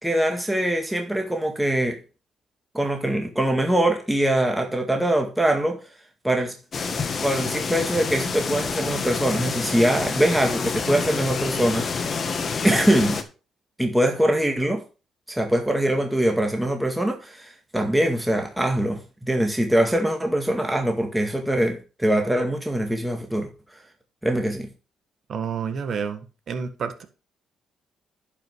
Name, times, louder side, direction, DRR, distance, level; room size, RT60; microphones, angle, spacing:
voice 1, 0.0-2.0 2.7-5.8 6.2-6.5 7.2-12.2 12.6-13.2 13.8-14.8 15.3-23.5 24.2-24.7, right 1 dB, 5° right, 2.0 m, -23 dB
sound 1, 6.7-13.2, left 5 dB, 45° left, 1.5 m, -28 dB
voice 2, 25.3-27.0, right 6 dB, 55° right, 1.6 m, -29 dB
10.5 x 5.5 x 4.7 m
cardioid pair, 90°, 0 cm